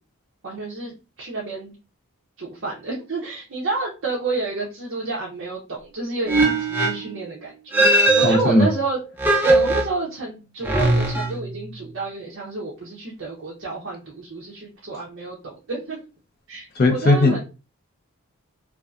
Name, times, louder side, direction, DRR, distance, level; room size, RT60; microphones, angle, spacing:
voice 1, 0.4-1.7 2.4-9.0 9.4-16.0 16.5-17.4, right 3 dB, 55° right, -4 dB, 0.6 m, -30 dB
sound 1, 6.3-7.1 7.7-8.8 9.2-10.2 10.6-11.7, right 2 dB, 10° right, 0.4 m, -20 dB
voice 2, 8.2-8.7 16.8-17.4, left 1 dB, 40° left, 1 dB, 0.6 m, -17 dB
2.6 x 2.3 x 2.3 m, 0.31 s
head